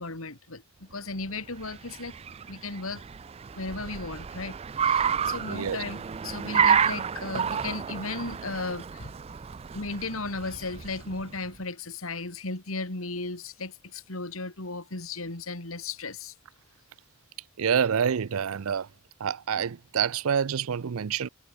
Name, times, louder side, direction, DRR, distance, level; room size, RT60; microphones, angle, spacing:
voice 1, 0.0-2.1 2.5-3.0 3.5-4.6 4.8-9.1 9.7-16.3, left 3 dB, 80° left, 3.3 m, -35 dB
Car, 1.2-11.5, right 7 dB, 30° right, 0.3 m, -30 dB
voice 2, 5.5-5.8 17.6-18.9 19.2-21.3, right 7 dB, 90° right, 0.5 m, -27 dB
head